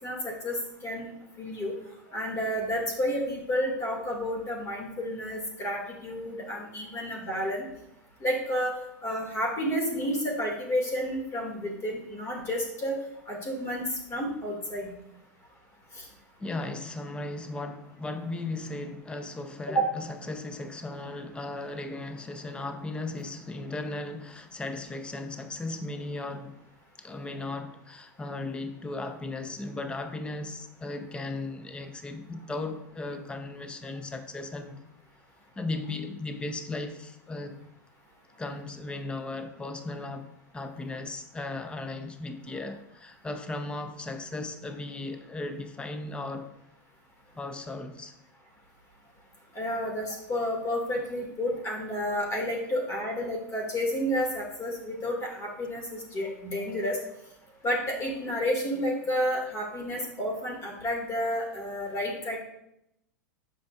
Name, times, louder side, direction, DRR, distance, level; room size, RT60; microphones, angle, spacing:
voice 1, 0.0-1.1 1.4-1.7 2.1-7.7 8.2-8.7 9.0-13.0 13.3-14.9 16.0-16.1 19.7-19.8 49.6-57.0 57.6-62.4, equal, 30° left, 1.9 m, -30 dB
voice 2, 16.4-26.6 27.0-34.8 35.6-37.6 38.4-46.5 47.3-48.1, left 2 dB, 10° left, 0.6 m, -36 dB
7.5 x 5.8 x 2.4 m
hypercardioid pair, 100°, 10 cm